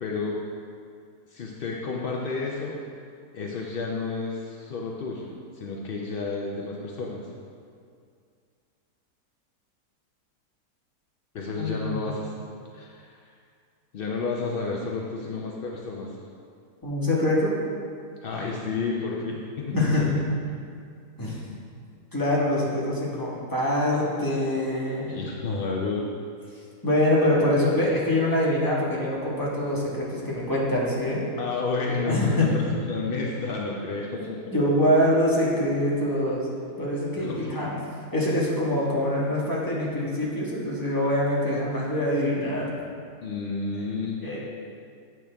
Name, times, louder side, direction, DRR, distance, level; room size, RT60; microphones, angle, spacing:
voice 1, 0.0-0.4 1.3-2.8 3.3-7.2 11.3-12.3 12.7-13.1 13.9-16.1 18.2-20.2 25.1-26.1 31.4-34.4 37.2-37.6 43.2-44.2, left 4 dB, 75° left, -2 dB, 0.5 m, -31 dB
voice 2, 11.6-12.0 16.8-17.5 19.7-20.1 21.2-21.4 22.1-25.2 26.8-31.2 32.0-32.5 34.5-36.5 36.8-37.7 38.1-42.7 44.2-44.4, left 1 dB, 15° left, -6 dB, 1.2 m, -24 dB
8.6 x 6.1 x 3.4 m, 2.3 s
omnidirectional pair, 1.8 m